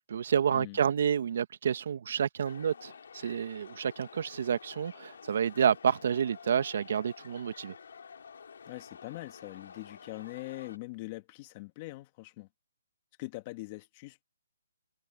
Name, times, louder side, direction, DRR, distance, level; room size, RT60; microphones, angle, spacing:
voice 1, 0.1-7.7, right 8 dB, 50° right, 1.6 m, -29 dB
sound 1, 2.4-10.8, left 6 dB, 65° left, 3.0 m, -50 dB
voice 2, 8.7-12.5 13.2-14.2, left 21 dB, 25° left, 2.2 m, -42 dB
hypercardioid pair, 165°, 0 cm